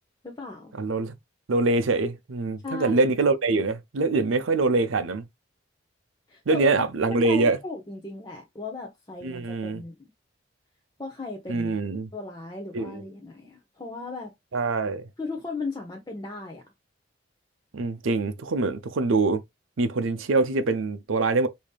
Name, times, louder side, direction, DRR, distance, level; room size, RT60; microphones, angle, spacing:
voice 1, 0.2-0.7 2.6-3.1 6.3-6.7 7.0-10.1 11.0-11.8 12.1-14.3 15.2-16.6, left 3 dB, 20° left, 0.6 m, -36 dB
voice 2, 0.8-1.1 1.5-5.3 6.5-7.6 9.2-9.8 11.5-12.1 12.7-13.0 14.5-15.1 17.7-19.4 19.8-21.5, right 3 dB, 90° right, 0.6 m, -24 dB
5.0 x 2.7 x 2.2 m
head